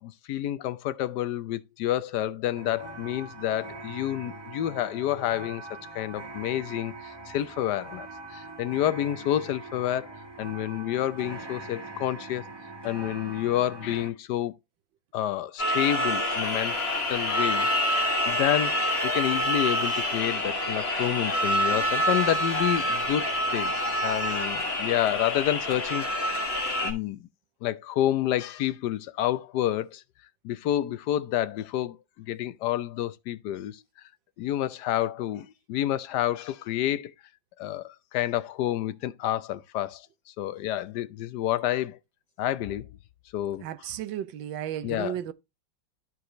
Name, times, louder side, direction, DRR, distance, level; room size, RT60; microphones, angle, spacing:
voice 1, 0.0-10.1 10.4-12.4 12.8-14.5 15.1-16.7 17.1-23.7 24.0-27.2 27.6-30.0 30.4-33.8 34.4-37.1 37.6-42.0 42.4-42.9 43.3-43.6 44.8-45.2, left 12 dB, 70° left, 1.1 m, -29 dB
sound 1, 2.5-14.1, right 2 dB, 15° right, 1.2 m, -42 dB
sound 2, 15.6-26.9, equal, 35° left, 2.0 m, -27 dB
voice 2, 43.6-45.3, right 11 dB, 75° right, 1.4 m, -34 dB
13.0 x 4.8 x 3.0 m
omnidirectional pair, 2.1 m